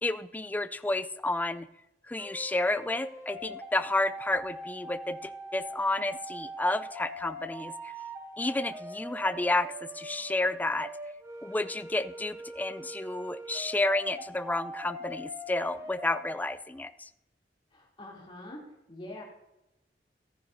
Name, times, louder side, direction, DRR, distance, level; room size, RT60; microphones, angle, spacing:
voice 1, 0.0-1.7 2.1-7.9 8.4-10.9 11.4-17.1, left 2 dB, 10° left, 13 dB, 0.3 m, -31 dB
sound 1, 2.2-16.5, right 1 dB, 15° right, 1.0 m, -43 dB
voice 2, 17.7-19.2, left 1 dB, 30° left, -3 dB, 2.9 m, -45 dB
15.0 x 9.6 x 2.7 m, 0.90 s
head